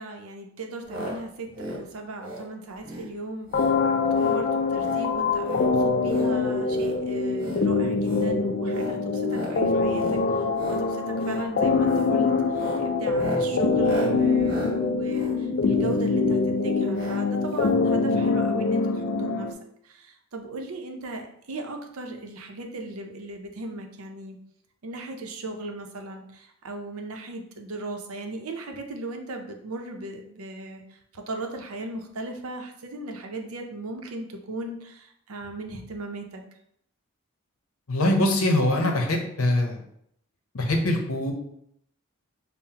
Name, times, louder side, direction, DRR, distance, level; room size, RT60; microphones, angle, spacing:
voice 1, 0.0-19.5 19.8-24.4 24.8-36.4, right 2 dB, 80° right, 3 dB, 0.6 m, -37 dB
sound 1, 0.9-1.2 1.4-1.8 2.2-2.5 2.8-3.1 3.5-3.7 4.1-4.4 4.7-5.0 5.4-6.3 6.7-7.0 7.3-7.6 8.0-8.3 8.7-9.0 9.3-9.6 9.9-10.2 10.5-10.8 11.2-11.4 11.8-12.1 12.5-16.1 16.9-17.2 17.5-17.6 17.7-17.8, equal, 40° right, 1.1 m, -37 dB
sound 2, 3.5-19.5, left 4 dB, 50° left, 0.3 m, -24 dB
voice 2, 37.9-39.8 40.5-41.3, left 1 dB, 75° left, 3 dB, 0.7 m, -23 dB
5.6 x 2.1 x 2.8 m, 0.71 s
head